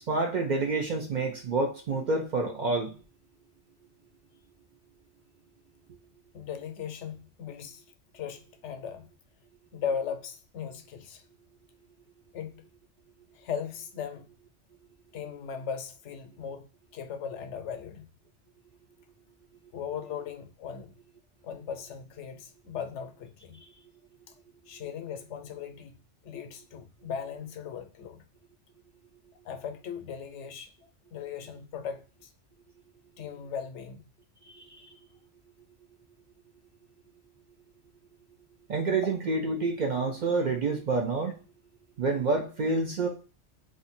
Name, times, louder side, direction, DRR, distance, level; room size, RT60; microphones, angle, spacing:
voice 1, 0.1-2.9 34.6-34.7 38.7-41.3 42.0-43.1, right 3 dB, 55° right, 0.5 m, -28 dB
voice 2, 6.3-7.8 8.1-9.1 9.7-11.2 12.3-12.6 13.3-14.3 15.1-18.1 19.7-20.9 21.4-23.6 24.3-24.4 24.7-25.9 26.2-28.2 29.4-32.3 33.2-34.0, left 7 dB, 80° left, 0.9 m, -38 dB
2.6 x 2.5 x 4.1 m
omnidirectional pair, 1.2 m